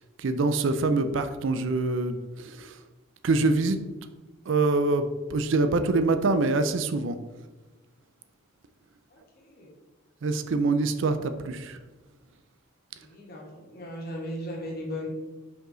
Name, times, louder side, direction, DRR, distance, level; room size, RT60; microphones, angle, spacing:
voice 1, 0.2-2.8 3.2-3.8 4.5-7.2 10.2-11.8, right 3 dB, 65° right, 9 dB, 0.5 m, -25 dB
voice 2, 9.1-9.7 13.0-15.1, left 1 dB, 45° left, -2 dB, 1.5 m, -37 dB
5.1 x 4.8 x 3.8 m, 1.2 s
head